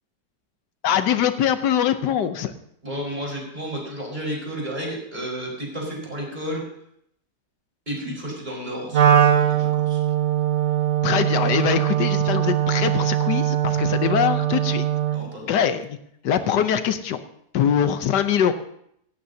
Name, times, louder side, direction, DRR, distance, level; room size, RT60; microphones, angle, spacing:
voice 1, 0.8-2.5 11.0-14.9 15.4-16.0 16.2-17.2 17.5-18.5, left 9 dB, 80° left, 10 dB, 1.4 m, -22 dB
voice 2, 2.8-6.6 7.9-10.0 15.1-15.6 16.4-16.5, equal, 25° right, -2 dB, 4.9 m, -32 dB
Wind instrument woodwind instrument, 8.9-15.3, right 11 dB, 55° right, 0.9 m, -21 dB
17.0 x 15.5 x 2.8 m, 0.71 s
omnidirectional pair, 1.8 m